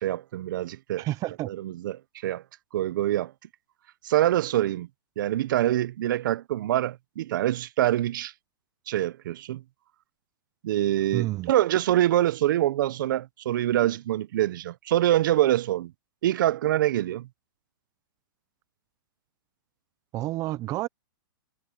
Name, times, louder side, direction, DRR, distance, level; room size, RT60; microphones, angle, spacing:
voice 1, 0.0-1.0 1.5-2.4 2.7-3.3 4.0-4.9 5.2-8.3 8.9-9.6 10.6-15.9 16.2-17.3, right 13 dB, 60° right, 0.9 m, -25 dB
voice 2, 1.0-1.5 11.1-11.5 20.1-20.9, right 16 dB, 30° right, 0.7 m, -29 dB
hypercardioid pair, 135°, 12 cm